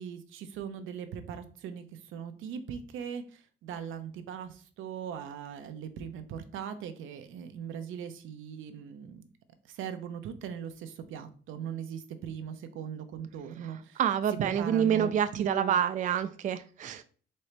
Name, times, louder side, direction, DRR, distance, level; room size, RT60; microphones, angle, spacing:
voice 1, 0.0-9.2 9.6-14.0 14.4-15.8, right 8 dB, 80° right, 8 dB, 0.6 m, -39 dB
voice 2, 14.0-17.0, right 9 dB, 40° right, 10 dB, 0.4 m, -27 dB
4.3 x 3.8 x 3.3 m, 0.41 s
cardioid pair, 90°, 20 cm